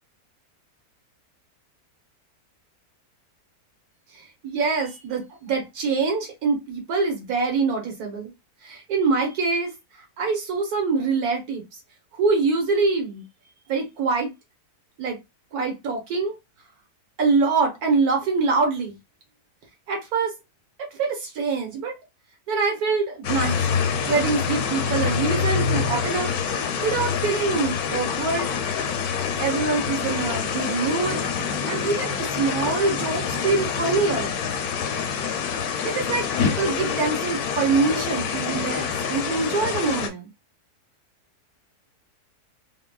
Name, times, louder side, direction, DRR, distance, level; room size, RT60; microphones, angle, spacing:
voice 1, 4.1-8.3 8.6-9.7 10.2-11.8 12.1-13.2 13.7-14.3 15.0-15.2 15.5-16.4 17.2-19.0 19.9-20.3 20.8-21.9 22.5-23.7 24.1-26.3 26.8-28.5 29.4-31.2 31.6-34.4 35.8-40.3, right 4 dB, 70° right, 1.5 m, -24 dB
sound 1, 23.2-40.1, left 6 dB, 75° left, 1.0 m, -26 dB
3.7 x 2.3 x 2.2 m
omnidirectional pair, 1.7 m